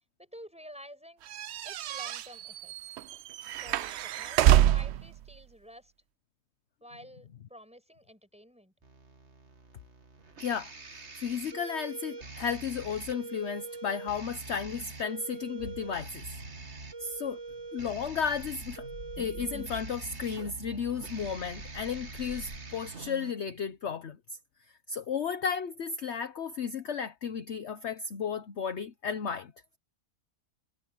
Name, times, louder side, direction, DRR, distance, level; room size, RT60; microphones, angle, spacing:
voice 1, 0.2-1.3 1.6-2.9 3.5-5.9 6.8-8.7, equal, 5° right, 5.8 m, -50 dB
sound 1, 1.3-5.1, right 12 dB, 90° right, 0.5 m, -26 dB
sound 2, 8.8-23.3, right 3 dB, 45° right, 2.4 m, -44 dB
voice 2, 10.4-10.7 11.2-16.2 17.0-17.4 17.7-18.9 19.2-24.2 24.9-29.5, left 6 dB, 50° left, 1.1 m, -34 dB
sound 3, 15.6-22.6, right 1 dB, 70° right, 8.3 m, -47 dB
omnidirectional pair, 1.7 m